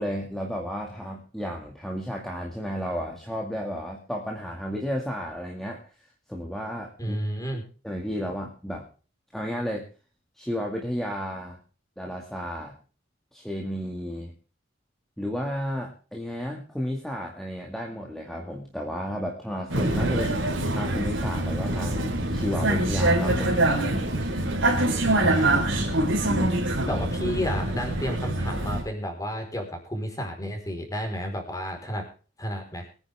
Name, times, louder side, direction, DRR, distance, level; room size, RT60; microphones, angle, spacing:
voice 1, 0.0-5.8 6.3-7.2 7.8-8.8 9.3-9.9 10.4-11.6 12.0-12.8 13.3-14.3 15.2-20.4 20.7-23.6, equal, ahead, -1 dB, 2.2 m, -32 dB
voice 2, 7.0-7.6 25.2-26.0 26.9-32.1 32.4-32.9, equal, 20° left, 4 dB, 4.4 m, -32 dB
Vehicle, 19.7-28.8, right 1 dB, 70° right, 4.4 m, -24 dB
23.0 x 9.9 x 3.6 m, 0.36 s
head